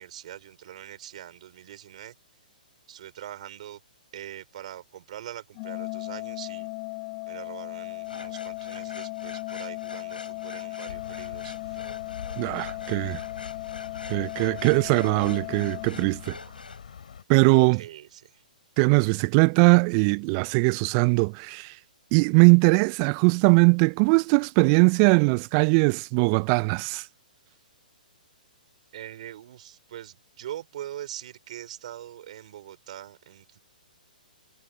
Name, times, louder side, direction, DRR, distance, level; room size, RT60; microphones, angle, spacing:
voice 1, 0.0-2.1 2.9-3.8 4.1-6.7 7.3-11.8 17.8-18.4 28.9-33.6, right 12 dB, 50° right, 6.1 m, -42 dB
Organ, 5.5-16.6, left 34 dB, 35° left, 1.7 m, -37 dB
sound 1, 8.0-16.8, left 3 dB, 80° left, 7.7 m, -45 dB
sound 2, 10.9-17.2, left 7 dB, 65° left, 4.5 m, -44 dB
voice 2, 12.4-13.2 14.1-16.4 17.3-17.8 18.8-21.8 22.1-27.1, right 36 dB, 35° right, 1.1 m, -20 dB
figure-of-eight pair, 120°, 5 cm